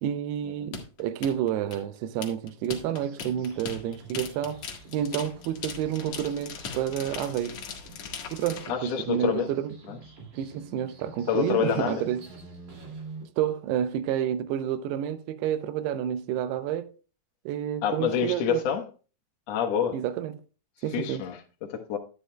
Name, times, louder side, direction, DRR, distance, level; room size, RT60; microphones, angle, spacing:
voice 1, 0.0-4.7 4.9-7.6 8.3-9.7 10.3-12.2 13.4-16.9 17.5-18.6 19.9-20.3 20.8-21.2, right 10 dB, 85° right, 2.7 m, -29 dB
sound 1, 0.7-8.7, left 6 dB, 60° left, 1.9 m, -39 dB
sound 2, 2.8-13.2, right 3 dB, 50° right, 3.5 m, -48 dB
voice 2, 8.7-9.5 9.9-10.0 11.3-12.0 17.8-18.8 19.5-20.0 20.9-22.0, left 8 dB, 75° left, 1.5 m, -27 dB
10.5 x 10.0 x 2.2 m
omnidirectional pair, 4.8 m